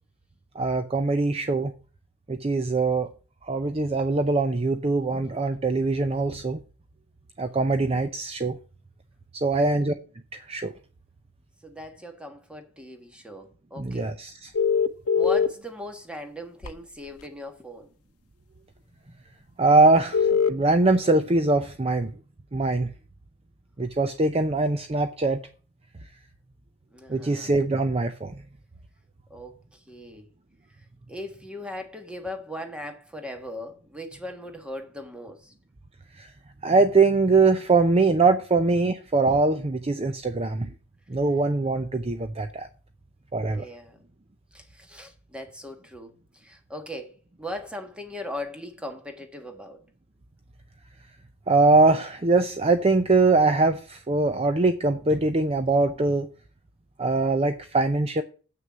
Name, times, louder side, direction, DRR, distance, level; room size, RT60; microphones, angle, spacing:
voice 1, 0.6-1.7 2.3-3.1 3.5-6.6 7.4-8.6 9.3-9.9 10.3-10.7 13.8-14.5 19.6-22.1 22.5-22.9 23.8-25.4 27.1-28.4 36.2-36.3 36.6-40.7 41.1-42.7 43.3-43.7 51.5-56.3 57.0-58.2, right 3 dB, 25° right, 0.6 m, -22 dB
voice 2, 11.6-14.1 15.1-17.9 26.9-27.5 29.3-30.2 31.1-35.5 43.5-44.0 44.5-49.8, left 1 dB, 5° right, 1.4 m, -39 dB
sound 1, 14.5-15.5 16.6-16.7 20.1-20.5, left 6 dB, 80° left, 0.7 m, -21 dB
7.8 x 6.4 x 7.4 m
head